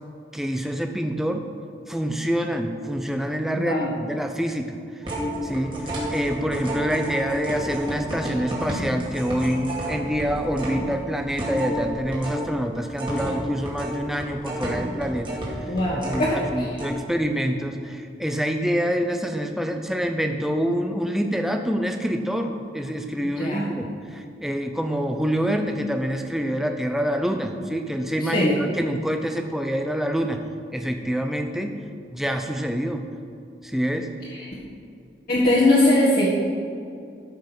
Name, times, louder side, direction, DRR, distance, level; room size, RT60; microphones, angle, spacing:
voice 1, 0.3-1.5 1.9-4.8 5.4-5.7 6.1-15.6 15.9-30.4 30.7-31.8 32.1-33.0 33.6-34.1, equal, ahead, 5 dB, 0.6 m, -26 dB
voice 2, 3.5-3.9 15.7-16.8 23.4-23.7 28.2-28.6 34.3-34.5 35.3-36.3, left 1 dB, 50° left, -8 dB, 1.6 m, -21 dB
sound 1, 5.0-12.5 12.7-16.5 16.8-16.9, equal, 25° right, 2.4 m, -30 dB
13.5 x 5.4 x 6.1 m, 2.4 s
head